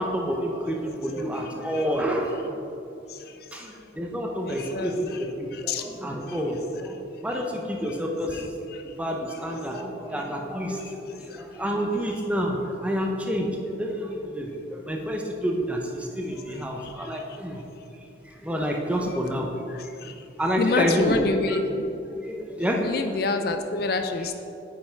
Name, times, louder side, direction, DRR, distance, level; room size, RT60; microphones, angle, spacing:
voice 1, 0.0-2.6 3.5-5.1 5.3-8.6 9.0-17.6 18.3-20.0 20.4-21.2 21.5-21.6 22.2-22.9, equal, 5° right, 0 dB, 0.7 m, -29 dB
voice 2, 4.4-5.2 5.5-5.8 7.3-7.4 8.3-8.5 19.0-19.1 20.0-20.1 20.5-21.7 22.8-24.3, left 3 dB, 50° left, 7 dB, 0.4 m, -27 dB
8.8 x 5.6 x 4.5 m, 2.9 s
head